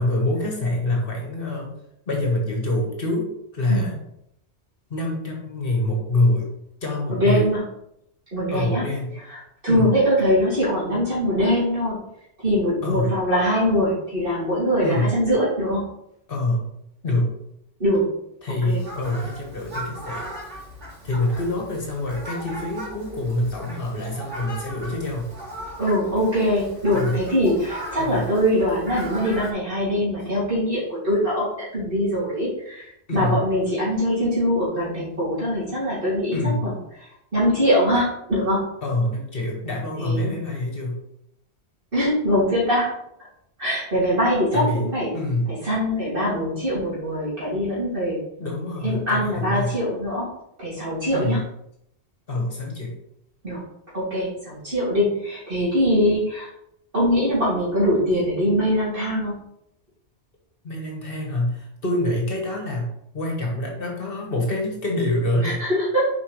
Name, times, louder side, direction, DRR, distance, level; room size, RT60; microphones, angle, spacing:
voice 1, 0.0-1.8 2.1-3.9 4.9-6.5 6.8-7.5 8.5-9.2 9.7-9.9 12.8-13.2 14.8-15.1 16.3-16.6 17.0-17.3 18.4-20.3 21.0-25.3 26.9-27.2 28.0-28.3 33.1-33.4 36.3-36.7 38.8-41.0 44.5-44.9 45.1-45.5 48.4-49.8 51.1-51.4 52.3-53.0 60.6-62.9 63.1-65.6, left 1 dB, 55° left, -1 dB, 1.6 m, -25 dB
voice 2, 7.1-7.7 8.3-8.8 9.3-12.0 12.4-15.8 17.8-18.1 18.6-18.9 25.8-36.7 37.3-38.7 40.0-40.4 41.9-42.9 43.6-45.2 45.5-48.2 48.8-50.3 50.6-51.4 53.4-53.6 53.9-56.5 56.9-59.4 65.4-66.0, equal, 50° right, -9 dB, 2.7 m, -22 dB
Fowl, 18.7-29.5, equal, 85° right, 2.8 m, -38 dB
7.0 x 4.9 x 3.2 m, 0.77 s
omnidirectional pair, 1.2 m